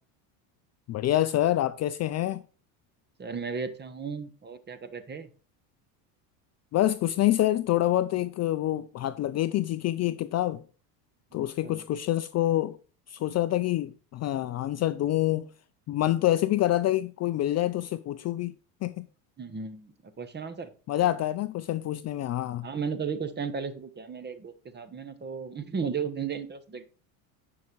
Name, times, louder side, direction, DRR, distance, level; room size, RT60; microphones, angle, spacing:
voice 1, 0.9-2.4 6.7-10.6 11.3-12.8 13.1-15.5 15.9-18.5 18.8-19.1 20.9-22.7, left 14 dB, 35° left, 0.5 m, -26 dB
voice 2, 3.2-5.3 11.6-11.8 19.4-20.7 22.6-26.9, right 6 dB, 20° right, 1.2 m, -35 dB
9.6 x 5.9 x 4.6 m
supercardioid pair, 110°, 47 cm